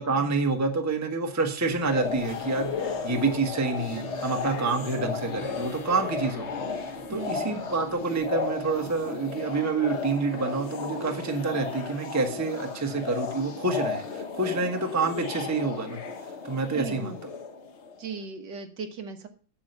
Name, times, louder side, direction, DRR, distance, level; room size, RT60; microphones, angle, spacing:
voice 1, 0.0-6.5 6.8-16.0 16.4-17.1, right 3 dB, 10° right, 4 dB, 0.9 m, -28 dB
sound 1, 1.6-9.1, left 1 dB, 90° left, 2.3 m, -47 dB
sound 2, 1.9-18.1, left 4 dB, 45° left, 1.0 m, -34 dB
voice 2, 7.1-7.7 16.7-17.2 18.0-19.3, right 5 dB, 60° right, 6 dB, 1.9 m, -37 dB
8.5 x 7.4 x 6.7 m, 0.40 s
omnidirectional pair, 2.2 m